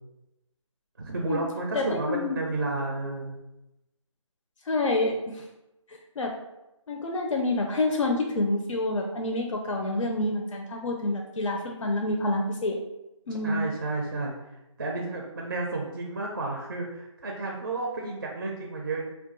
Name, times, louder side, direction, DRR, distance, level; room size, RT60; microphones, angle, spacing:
voice 1, 1.0-3.4 13.4-14.3 14.8-19.0, right 2 dB, 35° right, 0 dB, 0.4 m, -31 dB
voice 2, 1.7-2.4 4.7-5.4 5.9-6.4 6.9-12.8 13.3-13.6, left 2 dB, 70° left, 1 dB, 0.5 m, -28 dB
2.4 x 2.3 x 3.8 m, 0.93 s
figure-of-eight pair, 160°, 17 cm